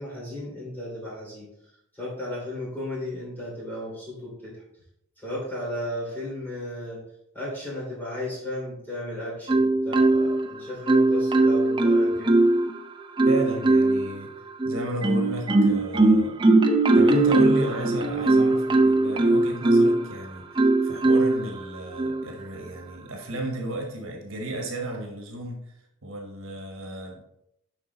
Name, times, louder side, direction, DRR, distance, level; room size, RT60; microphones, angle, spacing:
voice 1, 0.0-1.5 1.9-4.6 5.2-7.0 7.3-12.3, left 1 dB, 10° left, -6 dB, 3.0 m, -34 dB
Marimba xylophone, 9.5-10.5 10.9-12.7 13.2-14.1 14.6-20.0 20.6-21.4 22.0-22.2, right 2 dB, 20° right, 0.5 m, -20 dB
voice 2, 13.2-14.3 14.6-16.4 16.9-27.2, right 1 dB, 65° right, 1 dB, 1.4 m, -33 dB
7.3 x 5.2 x 3.9 m, 0.78 s
head